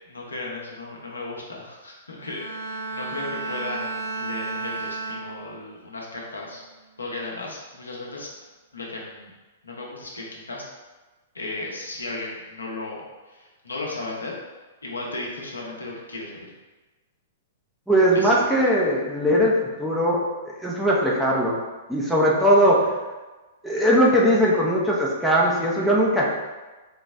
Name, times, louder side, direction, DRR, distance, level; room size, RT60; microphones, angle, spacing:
voice 1, 0.1-6.6 7.0-8.3 8.7-9.3 9.6-10.6 11.3-14.4 14.8-16.5 18.1-18.6, left 2 dB, 75° left, -3 dB, 0.9 m, -35 dB
Bowed string instrument, 2.2-5.8 6.2-6.6, right 3 dB, 75° right, 0.9 m, -33 dB
voice 2, 17.9-21.6 21.9-22.9 23.6-26.3, equal, ahead, -5 dB, 0.7 m, -20 dB
3.9 x 3.1 x 3.4 m, 1.2 s
figure-of-eight pair, 105°, 0 cm